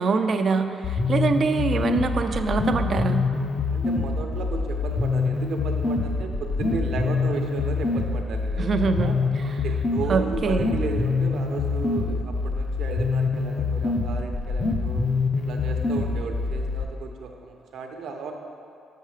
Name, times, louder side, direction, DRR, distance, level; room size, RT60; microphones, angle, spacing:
voice 1, 0.0-3.3 8.6-9.2 10.1-10.7, right 4 dB, 50° right, 8 dB, 0.5 m, -24 dB
sound 1, 0.8-16.8, left 4 dB, 35° left, 0.8 m, -25 dB
voice 2, 3.7-8.7 9.0-9.1 9.5-15.0 15.4-18.3, right 4 dB, 70° right, 3 dB, 0.8 m, -34 dB
6.7 x 6.3 x 4.9 m, 2.6 s
cardioid pair, 90°, 0 cm